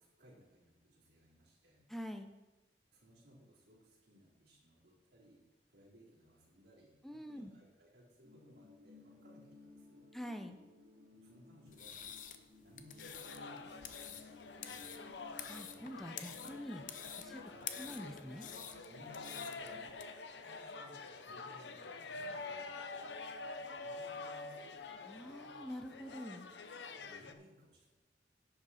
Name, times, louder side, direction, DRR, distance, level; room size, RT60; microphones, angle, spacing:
voice 1, 0.0-1.8 2.9-5.4 5.7-10.1 11.1-12.0 12.6-15.1 17.4-17.7 18.9-24.9 27.0-27.9, equal, 70° right, -6 dB, 4.0 m, -62 dB
voice 2, 1.9-2.3 7.0-7.5 10.1-10.6 15.5-16.8 17.2-17.4 17.8-18.5 25.1-26.5, equal, ahead, 6 dB, 0.7 m, -46 dB
sound 1, 8.2-20.1, left 3 dB, 35° right, 2.3 m, -59 dB
sound 2, 11.7-20.0, left 9 dB, 45° left, 0.6 m, -49 dB
sound 3, 13.0-27.3, left 3 dB, 80° left, 0.7 m, -47 dB
11.0 x 7.8 x 4.2 m, 1.1 s
head